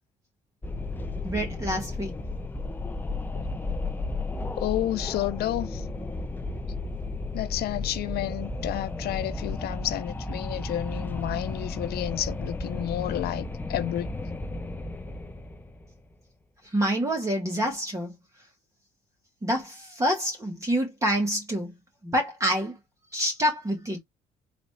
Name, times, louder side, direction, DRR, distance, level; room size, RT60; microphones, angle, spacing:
Wind, 0.6-16.0, left 2 dB, 10° left, 0.5 m, -33 dB
voice 1, 1.2-2.1 16.7-18.1 19.4-21.7 22.0-22.7 23.1-24.0, equal, 20° right, 1.4 m, -27 dB
voice 2, 4.6-5.8 7.3-14.1, left 13 dB, 70° left, 0.6 m, -30 dB
4.0 x 2.5 x 3.2 m
cardioid pair, 110°, 17 cm